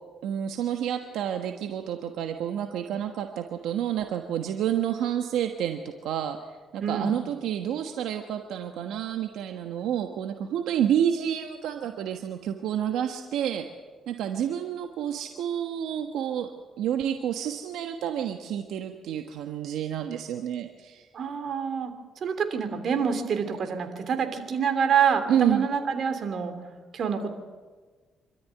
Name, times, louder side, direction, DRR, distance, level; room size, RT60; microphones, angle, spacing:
voice 1, 0.2-6.4 6.7-13.6 14.1-16.5 16.8-21.1 25.3-25.7, right 10 dB, 85° right, 5 dB, 1.3 m, -29 dB
voice 2, 6.8-7.1 21.1-21.9 22.2-26.5 26.9-27.3, right 7 dB, 60° right, 7 dB, 3.0 m, -26 dB
26.0 x 13.5 x 9.5 m, 1.4 s
cardioid pair, 90°, 0 cm